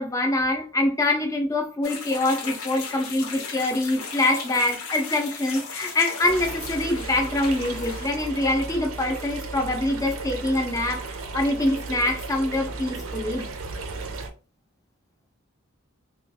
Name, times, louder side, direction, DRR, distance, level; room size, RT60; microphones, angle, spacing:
voice 1, 0.0-13.5, left 2 dB, 15° left, 0.4 m, -25 dB
sound 1, 1.8-8.1, left 5 dB, 75° left, 0.7 m, -36 dB
sound 2, 6.2-14.3, right 3 dB, 70° right, 0.5 m, -35 dB
2.9 x 2.3 x 2.7 m
head